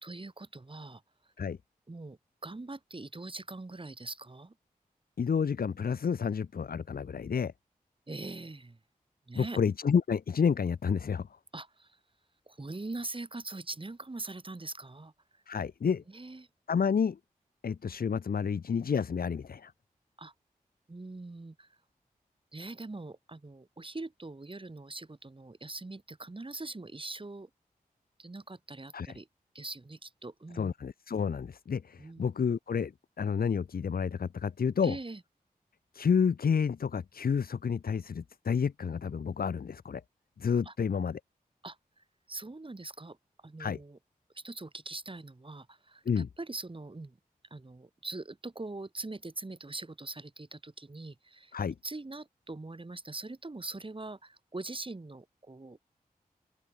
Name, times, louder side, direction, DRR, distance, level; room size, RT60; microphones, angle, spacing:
voice 1, 0.0-1.0 1.9-4.5 8.1-8.8 9.3-9.6 11.5-12.0 12.5-15.4 16.1-16.5 20.2-20.3 20.9-21.7 22.5-27.5 28.2-29.3 29.5-30.7 32.0-32.3 34.8-35.2 40.7-40.8 41.6-44.0 44.3-47.2 47.5-51.5 51.8-55.8, right 2 dB, 35° right, 2.1 m, -42 dB
voice 2, 5.2-7.5 9.3-11.3 15.5-16.0 16.7-17.2 17.6-19.7 28.9-29.1 30.5-32.9 33.2-35.0 35.9-40.0 40.4-41.2 43.6-43.8 46.1-46.3 51.5-51.7, left 6 dB, 70° left, 0.9 m, -30 dB
open air
cardioid pair, 40°, 16 cm